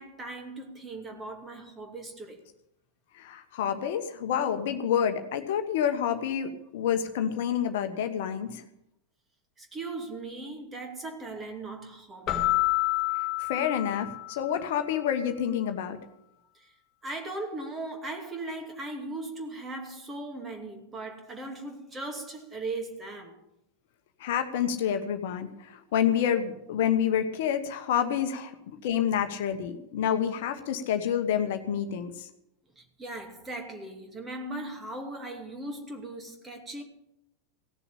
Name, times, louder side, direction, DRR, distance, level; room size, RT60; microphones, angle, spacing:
voice 1, 0.0-2.4 9.6-12.5 16.5-16.7 17.0-23.4 32.8-36.8, right 2 dB, 20° right, 2.6 m, -38 dB
voice 2, 3.1-8.6 13.4-16.0 24.2-28.5 28.8-32.3, left 9 dB, 55° left, 1.2 m, -28 dB
Keyboard (musical), 12.3-14.7, left 17 dB, 35° left, 1.8 m, -28 dB
17.0 x 7.0 x 8.6 m
figure-of-eight pair, 90°, 0 cm